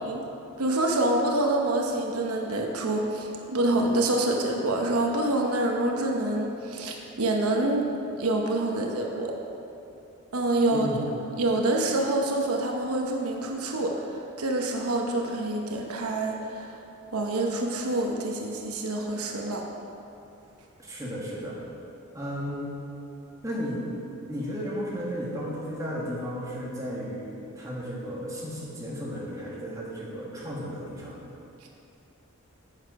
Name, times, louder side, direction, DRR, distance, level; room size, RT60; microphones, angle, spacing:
voice 1, 0.6-7.9 8.2-9.3 10.3-11.0 11.3-16.8 17.1-19.6, right 2 dB, 90° right, 1 dB, 0.9 m, -26 dB
voice 2, 10.7-11.1 20.8-21.6 22.1-22.7 23.4-24.0 24.3-31.2, equal, 15° right, -5 dB, 1.5 m, -34 dB
9.7 x 6.6 x 4.8 m, 2.8 s
head